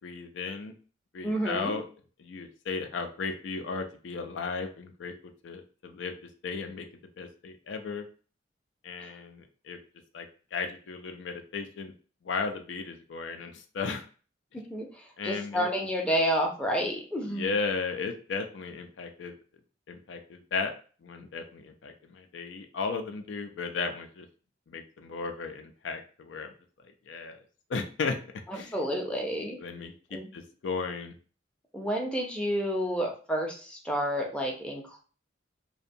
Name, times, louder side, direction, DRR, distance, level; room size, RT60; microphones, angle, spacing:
voice 1, 0.0-0.7 1.1-1.8 2.2-5.1 5.4-6.1 6.4-6.9 7.2-8.0 8.8-9.8 10.1-11.9 12.2-14.0 15.2-15.7 17.2-19.3 19.9-20.7 21.0-24.3 24.7-26.5 27.1-27.4 27.7-28.2 28.5-28.7 29.6-31.2, left 4 dB, 75° left, 6 dB, 0.4 m, -35 dB
voice 2, 1.2-1.7 14.7-17.5 28.7-29.6 30.1-30.3 31.7-35.0, equal, 5° left, -1 dB, 0.5 m, -30 dB
2.6 x 2.2 x 2.6 m, 0.39 s
head